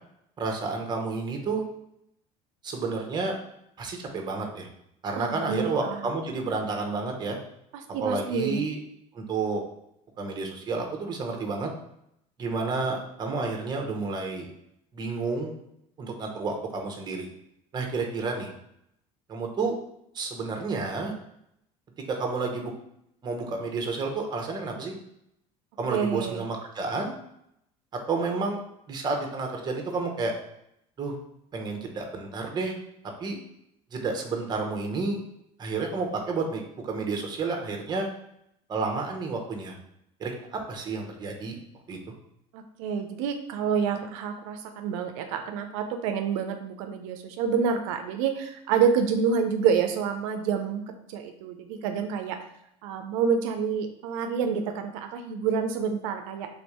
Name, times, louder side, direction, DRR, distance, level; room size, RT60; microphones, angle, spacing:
voice 1, 0.4-1.6 2.6-3.4 3.8-4.7 5.0-7.4 8.0-8.8 9.1-9.6 10.2-11.7 12.4-14.5 14.9-15.6 16.0-17.3 17.7-18.5 19.3-19.7 20.1-21.1 22.1-22.7 23.2-24.9 25.8-27.1 28.1-28.6 28.9-30.3 31.0-31.1 31.5-32.8 33.2-33.4 33.9-35.2 35.6-38.1 38.7-39.8 40.2-41.6 41.9-42.0, right 3 dB, 25° right, 2 dB, 0.8 m, -30 dB
voice 2, 5.2-6.1 7.7-8.6 25.9-26.4 42.5-52.4 52.8-56.5, right 6 dB, 85° right, 6 dB, 0.5 m, -28 dB
3.5 x 2.6 x 4.6 m, 0.77 s
supercardioid pair, 120°, 16 cm